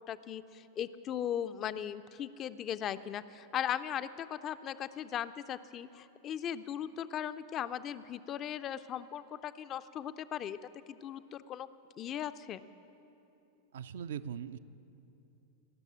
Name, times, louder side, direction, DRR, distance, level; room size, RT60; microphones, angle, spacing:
voice 1, 0.0-10.6 10.9-11.7 12.0-12.6, left 10 dB, 30° left, 13 dB, 0.4 m, -38 dB
voice 2, 13.7-14.6, right 8 dB, 60° right, 13 dB, 0.3 m, -40 dB
17.5 x 6.6 x 8.4 m, 2.9 s
figure-of-eight pair, 90°, 0 cm